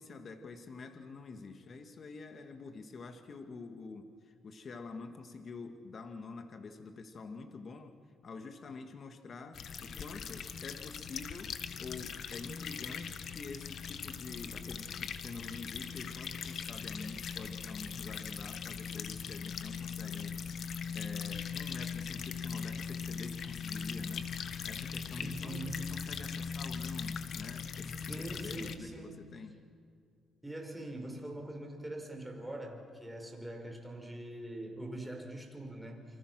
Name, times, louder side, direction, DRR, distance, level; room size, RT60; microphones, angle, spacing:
voice 1, 0.0-8.0 8.2-20.4 20.9-24.3 24.6-29.6, left 4 dB, 45° left, 6 dB, 2.0 m, -47 dB
sound 1, 9.5-28.8, left 6 dB, 60° left, 1.5 m, -40 dB
voice 2, 25.2-25.9 28.1-29.5 30.4-36.1, right 1 dB, 5° right, 3 dB, 5.5 m, -43 dB
28.5 x 25.0 x 6.3 m, 2.3 s
cardioid pair, 100°, 0 cm